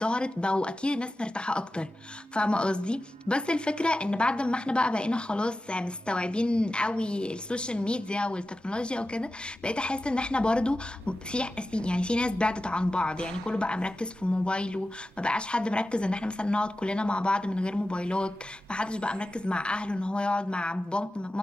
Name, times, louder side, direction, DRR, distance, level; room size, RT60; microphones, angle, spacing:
voice 1, 0.0-21.4, left 2 dB, 5° left, 0.9 m, -29 dB
sound 1, 1.7-8.2, right 6 dB, 50° right, 3.5 m, -51 dB
sound 2, 7.2-15.9, left 8 dB, 50° left, 1.6 m, -50 dB
sound 3, 11.0-20.2, right 12 dB, 75° right, 1.5 m, -51 dB
26.5 x 24.5 x 6.7 m
cardioid pair, 110°, 17 cm